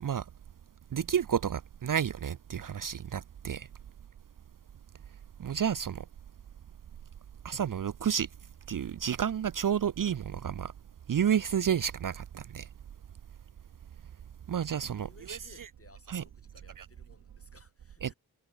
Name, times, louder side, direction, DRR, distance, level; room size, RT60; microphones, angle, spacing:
voice 1, 0.9-3.7 5.4-6.0 7.4-8.3 8.7-10.7 11.1-12.7 14.5-15.7 16.1-16.2 16.8-16.9 18.0-18.1, right 8 dB, 55° right, 0.5 m, -31 dB
voice 2, 15.0-18.1, left 2 dB, 35° left, 6.8 m, -59 dB
cardioid pair, 50°, 40 cm